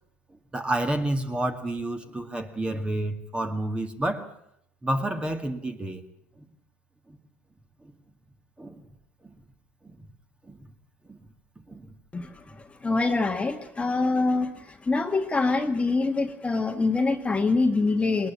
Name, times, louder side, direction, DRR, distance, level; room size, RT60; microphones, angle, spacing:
voice 1, 0.5-4.3 4.8-6.0 6.4-6.5 7.1-7.2 7.8-7.9 8.6-8.8 9.3-9.4 9.8-10.1 10.5-10.6 11.1-11.2 11.7-11.9, right 1 dB, 15° right, 2.2 m, -30 dB
voice 2, 12.1-18.3, left 3 dB, 20° left, 1.7 m, -25 dB
21.5 x 19.5 x 7.5 m
hypercardioid pair, 85°, 7 cm